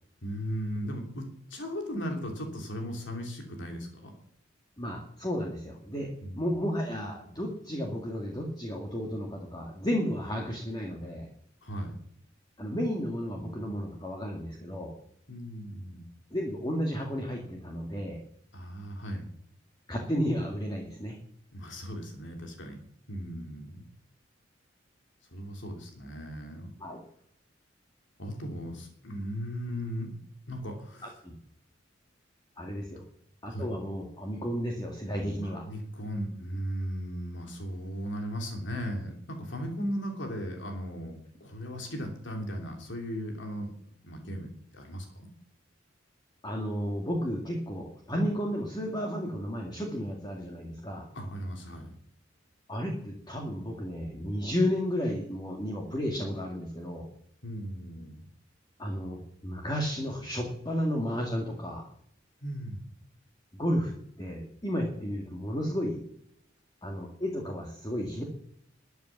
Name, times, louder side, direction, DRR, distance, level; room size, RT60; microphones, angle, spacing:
voice 1, 0.2-1.2 1.5-4.1 6.2-6.5 11.6-12.0 15.3-16.0 18.5-19.2 21.5-22.8 23.1-23.9 25.3-26.7 28.2-30.1 30.5-31.1 33.0-33.1 33.5-33.7 35.4-41.1 41.4-43.7 44.0-45.3 51.1-51.9 57.4-58.2 62.4-62.8, equal, 70° left, 3 dB, 2.9 m, -37 dB
voice 2, 4.8-6.1 6.3-11.3 12.6-14.9 16.3-18.2 19.9-21.2 26.8-27.0 31.0-31.3 32.6-33.0 33.4-35.6 46.4-51.1 52.7-57.1 58.8-61.9 63.5-63.9 64.2-66.0 66.8-68.2, equal, 20° left, 0 dB, 2.2 m, -32 dB
13.0 x 8.4 x 7.2 m, 0.67 s
head